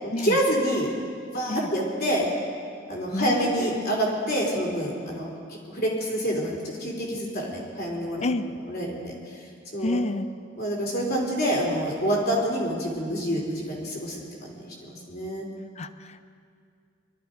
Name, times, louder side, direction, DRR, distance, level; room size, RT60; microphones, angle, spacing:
voice 1, 0.0-1.0 1.3-2.3 2.9-5.3 5.7-8.2 8.7-9.2 9.7-10.0 10.6-15.5, equal, 55° left, -2 dB, 3.7 m, -27 dB
voice 2, 3.1-3.8 8.2-8.4 9.8-10.3 15.8-16.2, left 2 dB, 35° left, 11 dB, 0.6 m, -29 dB
21.5 x 12.5 x 5.2 m, 2.3 s
head